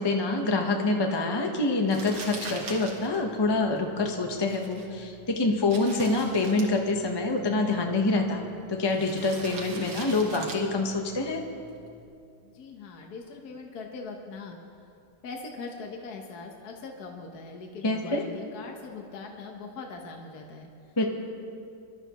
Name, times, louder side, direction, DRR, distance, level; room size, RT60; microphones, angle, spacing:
voice 1, 0.0-8.4 8.7-11.4 17.8-18.2 21.0-21.1, left 2 dB, 20° left, 2 dB, 0.8 m, -26 dB
Crumpling crinkling, 1.9-12.0, right 3 dB, 65° right, 2.3 m, -44 dB
voice 2, 12.4-14.6 15.2-20.7, left 3 dB, 55° left, 1 dB, 1.6 m, -41 dB
25.0 x 12.5 x 3.1 m, 2.5 s
omnidirectional pair, 2.0 m